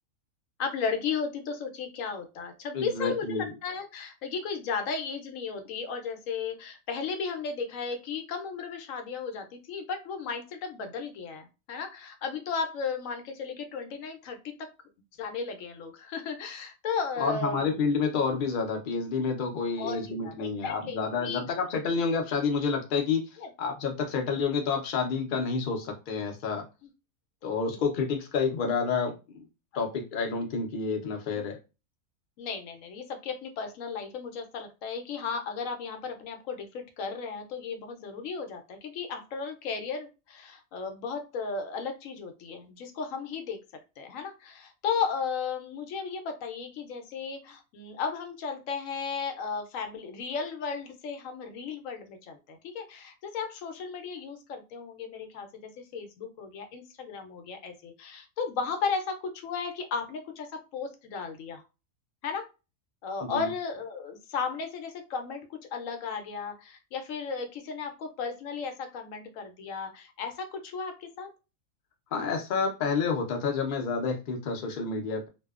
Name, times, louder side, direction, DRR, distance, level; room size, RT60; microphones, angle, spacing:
voice 1, 0.6-14.7 15.2-17.9 19.8-21.4 23.4-23.5 27.7-27.8 29.7-29.8 32.4-43.6 44.0-61.6 62.2-62.5 63.0-71.3, left 5 dB, 75° left, 6 dB, 0.9 m, -35 dB
voice 2, 2.7-3.5 17.2-23.2 23.6-26.6 27.4-29.4 29.7-31.6 63.2-63.5 72.1-75.3, left 5 dB, 55° left, 3 dB, 0.6 m, -29 dB
2.6 x 2.2 x 2.3 m, 0.29 s
omnidirectional pair, 1.4 m